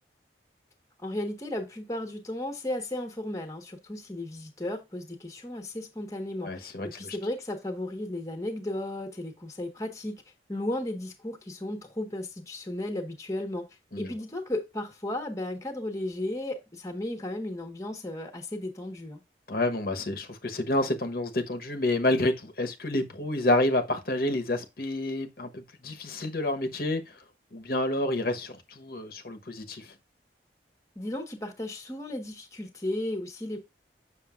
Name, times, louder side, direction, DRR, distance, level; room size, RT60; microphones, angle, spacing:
voice 1, 1.0-10.2 10.5-13.6 14.0-19.2 30.9-33.6, left 1 dB, 20° left, 1.3 m, -34 dB
voice 2, 6.4-7.2 13.9-14.1 19.5-27.1 27.5-29.9, left 1 dB, 55° left, 1.1 m, -29 dB
7.5 x 6.4 x 2.5 m
head